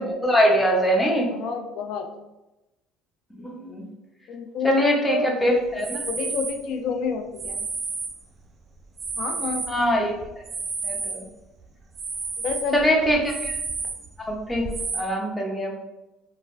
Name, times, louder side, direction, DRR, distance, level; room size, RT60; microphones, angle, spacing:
voice 1, 0.0-1.3 3.4-3.8 4.6-6.0 9.7-10.1 10.8-11.2 12.7-13.5 14.3-14.7 14.9-15.7, equal, 10° left, 0 dB, 0.7 m, -22 dB
voice 2, 1.3-2.1 4.3-5.3 6.0-7.7 9.2-9.6 12.4-12.8, left 5 dB, 65° left, 5 dB, 0.3 m, -29 dB
sound 1, 5.7-6.7 7.4-8.4 8.8-11.3 11.6-15.0, right 4 dB, 40° right, 0.4 m, -32 dB
3.2 x 2.1 x 2.4 m, 0.97 s
hypercardioid pair, 70°, 0 cm